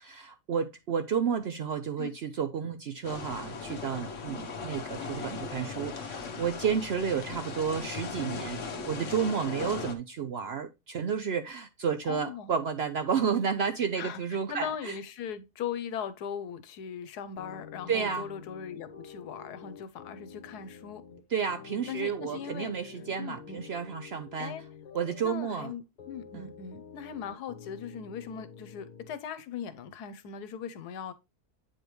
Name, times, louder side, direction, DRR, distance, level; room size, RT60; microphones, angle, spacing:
voice 1, 0.0-14.9 17.9-18.3 21.3-24.5 24.9-25.7 26.3-26.5, right 7 dB, 65° right, 0.6 m, -31 dB
sound 1, 3.0-9.9, left 4 dB, 55° left, 1.3 m, -38 dB
voice 2, 12.1-12.5 14.0-21.0 21.9-22.7 23.2-23.6 24.4-24.6 25.2-31.1, left 8 dB, 90° left, 1.3 m, -39 dB
sound 2, 17.4-29.2, left 6 dB, 70° left, 1.5 m, -48 dB
8.6 x 5.0 x 3.1 m
omnidirectional pair, 1.6 m